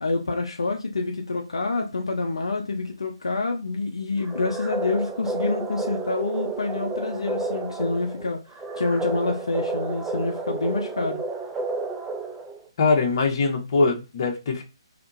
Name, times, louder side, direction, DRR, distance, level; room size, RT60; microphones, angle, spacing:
voice 1, 0.0-8.4 8.8-11.2, left 3 dB, 80° left, 0.6 m, -27 dB
sound 1, 4.2-12.7, right 3 dB, 10° right, 0.3 m, -31 dB
voice 2, 12.8-14.6, left 3 dB, 50° left, 1.0 m, -22 dB
3.4 x 2.8 x 2.5 m
figure-of-eight pair, 140°, 3 cm